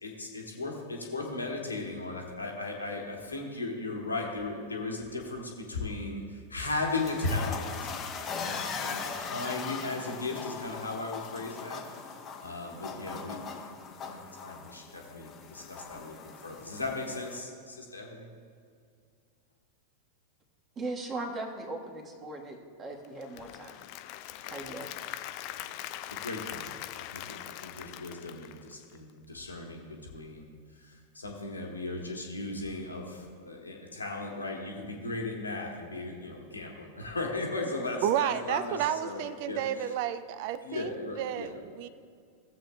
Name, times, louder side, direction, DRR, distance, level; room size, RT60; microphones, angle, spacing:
voice 1, 0.0-8.0 8.4-12.2 12.4-18.3 24.3-24.7 25.5-25.6 26.1-39.9 40.6-41.6, left 2 dB, 80° left, 1 dB, 1.4 m, -37 dB
sound 1, 6.6-17.4, left 5 dB, 30° left, 0.9 m, -40 dB
voice 2, 20.8-23.8 24.5-24.9, right 2 dB, 25° right, 2 dB, 1.4 m, -38 dB
Applause / Crowd, 23.0-29.1, left 13 dB, 45° left, 0.4 m, -42 dB
voice 3, 38.0-41.9, right 11 dB, 45° right, 14 dB, 0.5 m, -31 dB
17.0 x 7.7 x 2.3 m, 2.2 s
figure-of-eight pair, 90°, 0 cm